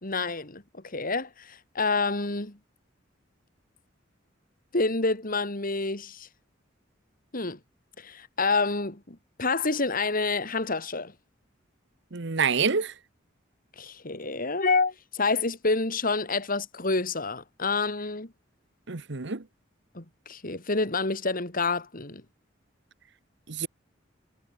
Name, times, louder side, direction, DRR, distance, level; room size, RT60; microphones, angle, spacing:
voice 1, 0.0-2.6 4.7-6.3 7.3-7.6 8.0-11.1 13.8-18.3 19.9-22.2, left 3 dB, 45° left, 3.4 m, -28 dB
voice 2, 12.1-12.9 18.9-19.4 23.5-23.7, right 5 dB, 65° right, 1.2 m, -27 dB
head